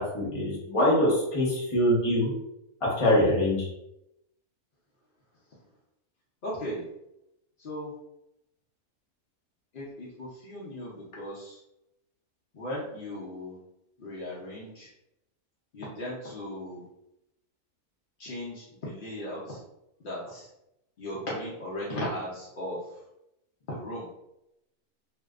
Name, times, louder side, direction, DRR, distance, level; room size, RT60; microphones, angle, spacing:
voice 1, 0.0-2.3 2.8-3.7, left 1 dB, 35° left, -5 dB, 0.6 m, -24 dB
voice 2, 6.4-6.9 7.6-7.9 9.7-11.6 12.5-13.6 14.0-14.9 15.7-16.9 18.2-19.6 20.0-20.5 21.0-23.0 23.7-24.1, left 1 dB, 80° left, -6 dB, 0.4 m, -37 dB
2.5 x 2.2 x 2.3 m, 0.86 s
omnidirectional pair, 1.6 m